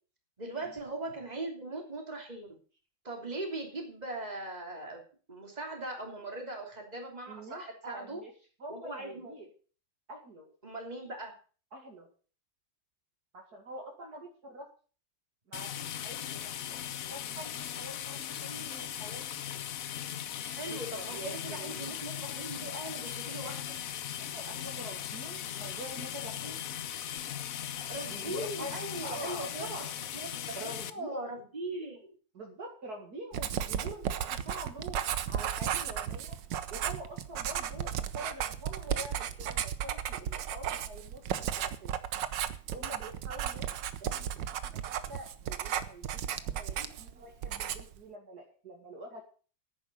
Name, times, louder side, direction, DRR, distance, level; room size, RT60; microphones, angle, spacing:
voice 1, 0.4-2.5 3.0-5.0 5.3-8.2 8.7-9.3 10.6-11.3 20.4-23.6 27.9-29.7 30.1-30.3 30.6-32.1, right 2 dB, 20° right, 2 dB, 3.3 m, -40 dB
voice 2, 7.3-8.3 8.6-9.5 10.1-10.5 11.7-12.1 13.3-14.7 15.5-19.3 20.7-21.9 24.2-26.6 28.1-29.9 30.5-31.5 31.7-31.9 32.3-36.3 36.7-42.0 42.7-43.7 44.0-49.2, right 1 dB, 55° right, 1 dB, 2.7 m, -46 dB
sound 1, 15.5-30.9, left 10 dB, 60° left, 1.0 m, -38 dB
Writing, 33.3-47.1 47.4-48.0, right 9 dB, 75° right, 1.6 m, -34 dB
10.5 x 9.7 x 6.9 m, 0.39 s
omnidirectional pair, 2.0 m